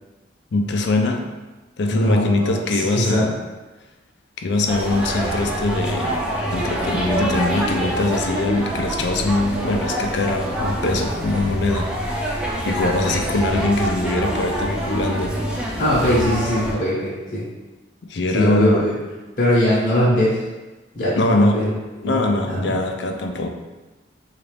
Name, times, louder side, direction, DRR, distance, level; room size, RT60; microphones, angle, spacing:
voice 1, 0.5-1.3 1.8-3.3 4.4-6.2 6.5-12.4 12.7-15.3 18.1-18.9 21.2-21.6 22.0-23.5, left 2 dB, 70° left, 4 dB, 0.4 m, -22 dB
voice 2, 1.9-3.3 15.8-17.5 18.3-19.0 19.4-20.4 20.9-21.7 22.0-22.2 22.5-22.7, left 1 dB, 45° left, -9 dB, 0.9 m, -20 dB
sound 1, 4.7-16.7, right 1 dB, 5° right, 0.4 m, -25 dB
3.9 x 2.4 x 3.3 m, 1.2 s
head